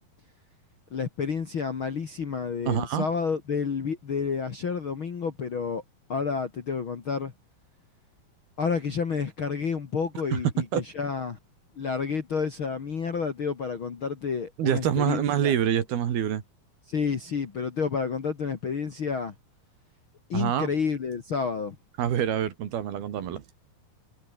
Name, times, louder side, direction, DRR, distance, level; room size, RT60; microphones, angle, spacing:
voice 1, 0.9-5.8 6.1-7.3 8.6-11.4 11.8-15.5 16.9-19.3 20.3-21.8, left 5 dB, 40° left, 2.3 m, -30 dB
voice 2, 2.7-3.1 10.3-10.4 10.7-10.8 14.6-16.4 20.3-20.7 22.0-23.4, right 9 dB, 90° right, 4.3 m, -26 dB
omnidirectional pair, 4.3 m